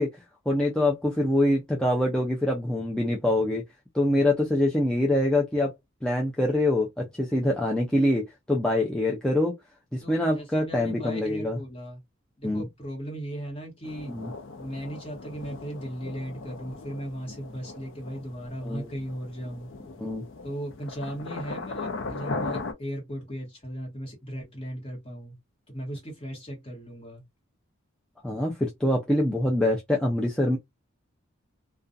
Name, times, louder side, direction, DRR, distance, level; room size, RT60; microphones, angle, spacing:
voice 1, 0.0-3.6 3.9-5.7 6.0-9.5 9.9-11.6 12.4-12.6 14.1-14.3 18.6-18.9 20.0-20.2 28.2-30.6, left 1 dB, 5° left, 0.3 m, -25 dB
voice 2, 10.0-12.0 12.4-14.1 14.6-19.7 20.4-25.3 25.7-27.2, equal, 25° left, 1.1 m, -37 dB
sound 1, 13.8-22.7, left 3 dB, 65° left, 0.5 m, -38 dB
2.4 x 2.2 x 2.5 m
head